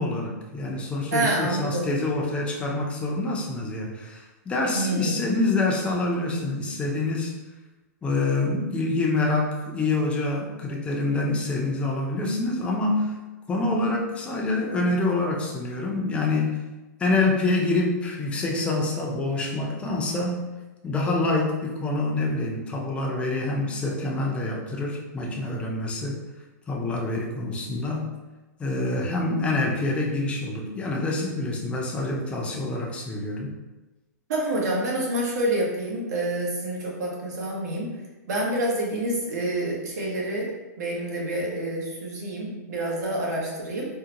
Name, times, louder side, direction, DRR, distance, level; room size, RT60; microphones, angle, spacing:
voice 1, 0.0-7.3 8.0-13.2 13.5-16.6 17.0-20.5 20.8-26.2 26.7-28.1 28.6-33.5, left 2 dB, 10° left, -1 dB, 0.5 m, -26 dB
voice 2, 1.1-1.9 4.7-5.1 34.3-37.9 38.3-40.5 40.8-43.9, right 1 dB, 65° right, -3 dB, 1.0 m, -27 dB
3.7 x 2.1 x 2.8 m, 1.1 s
hypercardioid pair, 140°, 10 cm